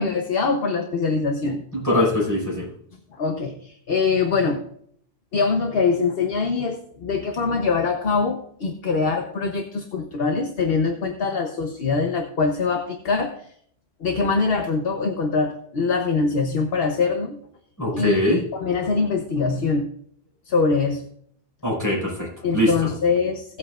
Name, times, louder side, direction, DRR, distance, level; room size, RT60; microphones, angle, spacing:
voice 1, 0.0-1.6 3.2-4.6 5.3-13.4 14.0-17.4 17.9-19.9 20.5-21.0 22.4-23.6, left 4 dB, 70° left, 4 dB, 1.2 m, -23 dB
voice 2, 1.7-2.7 17.8-18.4 21.6-22.3 22.5-22.7, left 1 dB, 15° left, -5 dB, 5.3 m, -21 dB
17.5 x 8.5 x 2.5 m, 0.65 s
omnidirectional pair, 1.0 m